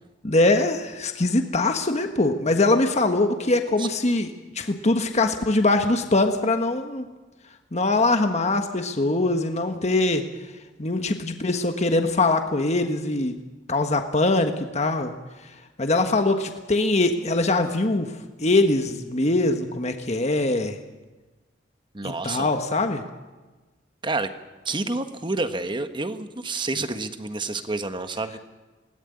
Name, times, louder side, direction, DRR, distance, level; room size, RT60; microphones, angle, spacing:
voice 1, 0.2-7.1 7.7-10.2 10.8-13.4 13.7-15.1 15.8-20.8 22.0-23.0, left 2 dB, 40° left, 6 dB, 1.4 m, -22 dB
voice 2, 21.9-22.5 24.0-24.3 24.6-28.4, right 3 dB, 25° right, 9 dB, 1.3 m, -29 dB
20.0 x 18.0 x 9.8 m, 1.2 s
head